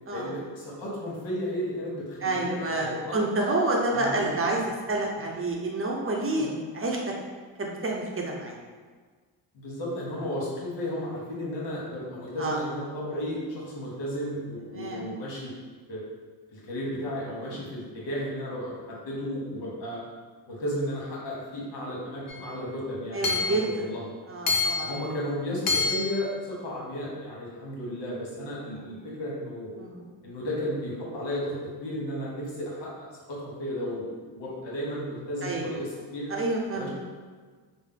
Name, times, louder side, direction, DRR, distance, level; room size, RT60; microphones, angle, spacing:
voice 1, 0.1-3.2 3.9-4.7 5.2-5.3 6.4-6.6 9.5-15.5 15.9-16.0 16.5-20.0 20.5-24.0 24.8-29.7 30.2-36.3 36.7-36.9, equal, 70° left, -5 dB, 1.3 m, -34 dB
voice 2, 2.2-4.6 4.9-6.5 6.7-7.0 7.6-8.5 12.4-12.6 14.7-15.0 17.4-17.6 23.1-23.6 24.3-24.9 29.8-30.0 35.4-35.7 36.3-36.9, right 2 dB, 30° right, -1 dB, 0.7 m, -28 dB
Hammer / Chink clink, 22.3-22.4 23.2-23.6 24.5-24.9 25.7-26.1, left 4 dB, 50° left, 0.7 m, -26 dB
3.3 x 2.1 x 3.7 m, 1.5 s
cardioid pair, 70°, 44 cm